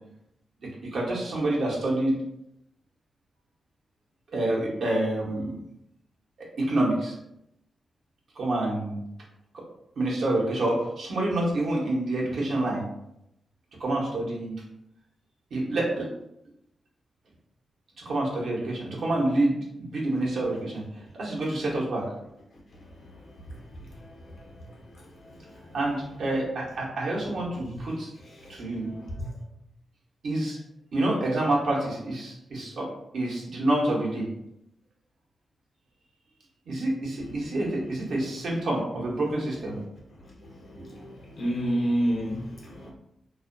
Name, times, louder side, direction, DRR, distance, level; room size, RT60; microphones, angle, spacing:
voice 1, 0.6-2.2 4.3-5.5 6.6-7.1 8.4-9.0 9.5-9.6 10.0-12.8 13.8-14.6 15.5-16.1 18.0-20.8 21.2-22.0 25.7-28.1 28.5-28.9 30.2-30.6 30.9-32.9 33.1-34.3 36.7-39.8, right 1 dB, 75° right, -4 dB, 0.8 m, -27 dB
voice 2, 41.4-42.9, right 1 dB, 65° left, -2 dB, 0.8 m, -27 dB
2.4 x 2.1 x 2.5 m, 0.82 s
supercardioid pair, 45°, 0 cm